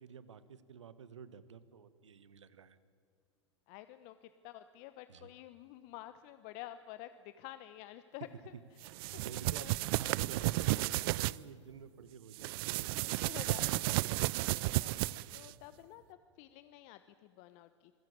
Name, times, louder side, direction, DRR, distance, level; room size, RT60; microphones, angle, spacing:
voice 1, 0.0-2.8 5.1-5.3 9.2-13.8, right 6 dB, 80° right, 15 dB, 1.3 m, -51 dB
voice 2, 3.7-8.5 9.1-9.3 9.5-9.7 13.2-13.8 14.8-15.1 15.3-17.9, left 14 dB, 50° left, 12 dB, 1.0 m, -50 dB
sound 1, 8.8-11.4 12.3-15.5, right 20 dB, 55° right, 0.5 m, -33 dB
26.5 x 16.5 x 8.7 m, 2.5 s
hypercardioid pair, 100°, 15 cm